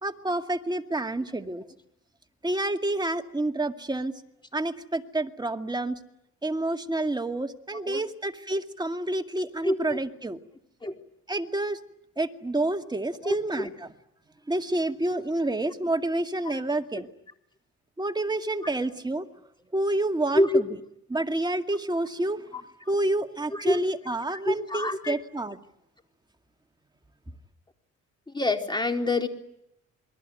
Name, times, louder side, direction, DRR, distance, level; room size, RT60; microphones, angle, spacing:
voice 1, 0.0-1.6 2.4-4.2 4.5-6.0 6.4-10.4 11.3-11.8 12.2-13.9 14.5-17.1 18.0-19.3 19.7-20.8 21.1-22.4 22.9-25.6, right 2 dB, 15° right, 5 dB, 2.2 m, -29 dB
voice 2, 9.6-10.0 10.8-10.9 13.2-13.7 20.3-20.6 23.5-23.8 24.4-25.2 28.3-29.3, left 1 dB, 15° left, 4 dB, 4.0 m, -26 dB
28.0 x 22.0 x 9.4 m, 0.79 s
cardioid pair, 90°, 30 cm